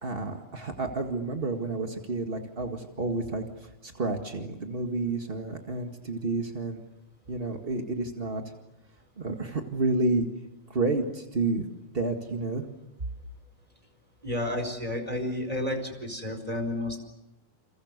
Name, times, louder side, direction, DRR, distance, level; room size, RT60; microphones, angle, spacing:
voice 1, 0.0-6.8 7.3-8.4 9.2-10.3 10.7-11.6 11.9-12.6, right 3 dB, 40° right, 4 dB, 0.8 m, -30 dB
voice 2, 14.2-17.0, left 1 dB, 10° right, 7 dB, 4.4 m, -31 dB
29.5 x 29.5 x 6.7 m, 0.95 s
omnidirectional pair, 4.4 m